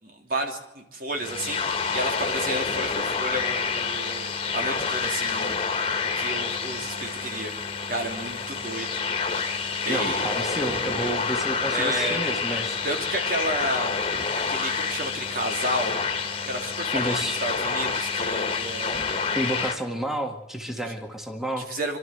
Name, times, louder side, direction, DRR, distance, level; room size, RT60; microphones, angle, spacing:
voice 1, 0.0-4.3 4.5-5.5 6.1-7.5 7.9-8.9 9.8-10.3 11.6-12.2 12.8-14.0 14.5-15.9 16.4-19.1 21.6-22.0, right 1 dB, 55° right, 2 dB, 3.3 m, -31 dB
sound 1, 1.1-19.8, left 5 dB, 35° left, 1.8 m, -28 dB
voice 2, 9.9-12.8 16.9-17.4 19.3-21.7, right 1 dB, ahead, 4 dB, 1.8 m, -30 dB
25.5 x 13.0 x 7.9 m, 0.93 s
head